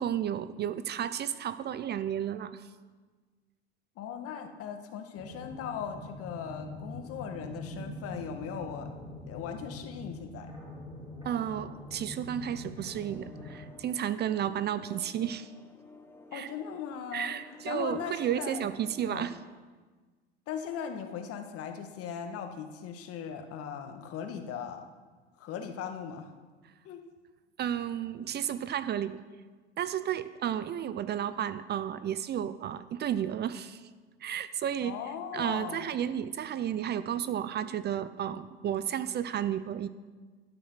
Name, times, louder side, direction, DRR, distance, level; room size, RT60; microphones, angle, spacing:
voice 1, 0.0-2.7 11.2-15.5 16.3-16.5 17.1-19.4 27.6-29.2 29.8-33.9 34.2-35.0 35.3-39.9, right 10 dB, 30° right, 14 dB, 0.6 m, -32 dB
voice 2, 4.0-8.9 9.3-10.5 16.3-17.3 17.7-18.7 19.1-19.3 20.5-24.8 25.4-26.3 26.8-27.0 34.8-36.0, left 7 dB, 45° left, 5 dB, 1.9 m, -38 dB
sound 1, 5.2-13.6, left 1 dB, 15° right, 4.5 m, -44 dB
sound 2, 13.0-19.2, left 2 dB, 5° left, 1.3 m, -53 dB
12.0 x 9.7 x 5.8 m, 1.4 s
hypercardioid pair, 90°, 31 cm